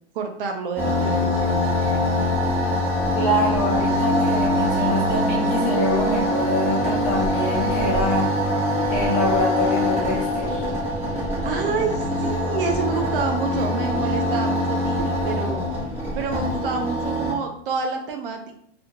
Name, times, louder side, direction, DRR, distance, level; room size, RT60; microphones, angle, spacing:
voice 1, 0.1-1.8 11.4-15.6 16.1-18.6, right 5 dB, 60° right, 4 dB, 0.5 m, -28 dB
sound 1, 0.8-17.3, left 1 dB, 5° right, 1.1 m, -23 dB
voice 2, 3.1-8.3 8.9-10.7, left 1 dB, 25° left, -4 dB, 0.6 m, -25 dB
2.5 x 2.4 x 2.8 m, 0.69 s
supercardioid pair, 150°, 33 cm